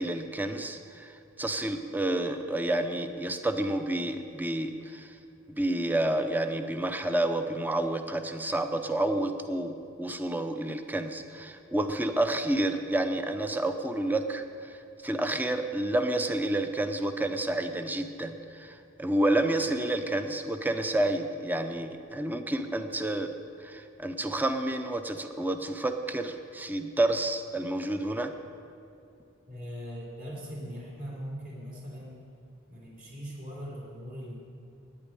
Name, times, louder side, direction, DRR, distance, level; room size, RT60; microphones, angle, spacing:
voice 1, 0.0-5.1 5.5-28.4, right 1 dB, 10° right, 7 dB, 0.6 m, -30 dB
voice 2, 29.5-32.3 32.7-34.4, equal, 45° right, -5 dB, 3.8 m, -40 dB
9.5 x 8.7 x 9.8 m, 2.5 s
head